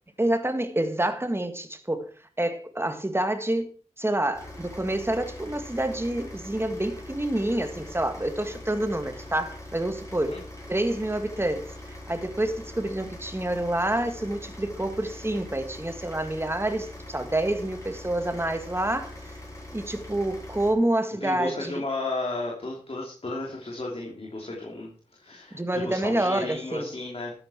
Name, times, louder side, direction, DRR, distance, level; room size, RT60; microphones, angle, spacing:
voice 1, 0.2-2.1 2.4-3.7 4.0-10.4 10.7-19.2 19.7-21.8 25.5-26.9, right 1 dB, 20° right, 1.8 m, -28 dB
sound 1, 4.3-20.7, left 1 dB, 25° left, 6.1 m, -42 dB
voice 2, 21.2-27.3, left 2 dB, 50° left, 3.2 m, -33 dB
13.0 x 9.9 x 4.5 m
wide cardioid pair, 60°, 12 cm